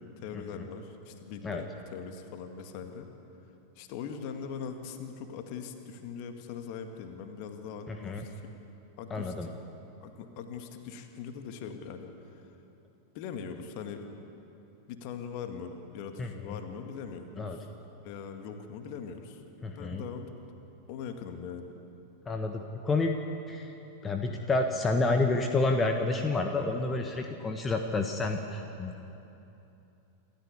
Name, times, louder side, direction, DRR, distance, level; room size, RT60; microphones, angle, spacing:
voice 1, 0.0-3.1 3.8-8.5 9.0-9.5 10.0-12.5 13.1-14.1 14.9-17.7 18.0-19.4 19.8-20.3 20.9-21.8, left 6 dB, 45° left, 6 dB, 2.0 m, -41 dB
voice 2, 7.9-8.2 9.1-9.5 16.2-16.6 17.4-17.6 19.6-20.0 22.3-23.2 23.5-23.8 24.0-29.0, left 3 dB, 15° left, 4 dB, 1.3 m, -29 dB
28.0 x 14.0 x 8.4 m, 2.9 s
figure-of-eight pair, 90°, 0 cm